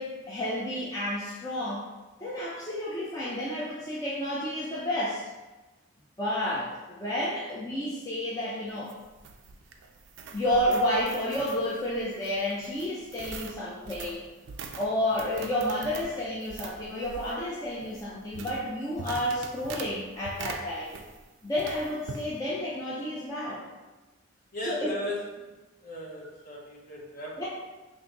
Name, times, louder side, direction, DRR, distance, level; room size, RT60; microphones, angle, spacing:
voice 1, 0.0-1.9 2.2-5.3 6.2-8.9 10.3-14.2 14.8-20.9 21.4-23.6 24.6-24.9 27.4-27.5, left 1 dB, 15° left, -8 dB, 0.5 m, -30 dB
sound 1, 8.7-21.3 21.6-22.3, right 4 dB, 55° right, 0.3 m, -43 dB
voice 2, 24.5-25.2 25.8-27.4, left 1 dB, 40° left, -4 dB, 0.8 m, -37 dB
3.5 x 2.6 x 3.9 m, 1.1 s
head